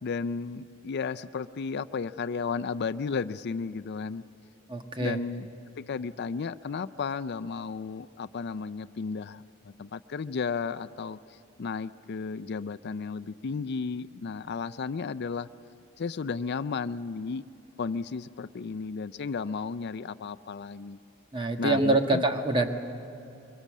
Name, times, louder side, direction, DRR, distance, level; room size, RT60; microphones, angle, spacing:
voice 1, 0.0-4.2 5.0-5.5 5.8-15.5 16.0-17.4 17.8-21.0 21.6-22.2, left 5 dB, 55° left, 14 dB, 0.4 m, -33 dB
voice 2, 4.7-5.2 21.3-22.7, right 2 dB, 25° right, 5 dB, 1.5 m, -25 dB
23.5 x 23.0 x 7.4 m, 2.8 s
head